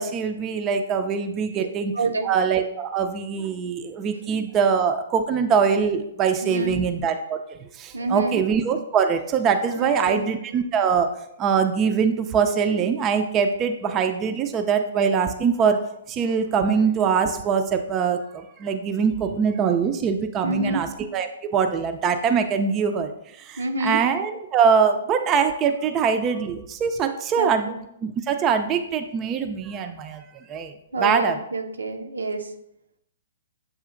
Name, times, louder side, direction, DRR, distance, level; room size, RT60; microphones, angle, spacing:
voice 1, 0.0-1.9 2.2-11.1 11.4-15.8 16.1-27.7 28.0-30.2 30.5-30.7 31.0-31.4, right 6 dB, 25° right, 7 dB, 0.4 m, -23 dB
voice 2, 1.9-2.3 6.4-6.8 7.9-8.4 9.8-10.2 20.4-20.8 23.6-24.0 27.4-27.8 30.9-32.5, right 2 dB, 80° right, 5 dB, 0.6 m, -28 dB
7.4 x 2.7 x 2.5 m, 0.78 s
figure-of-eight pair, 125°, 0 cm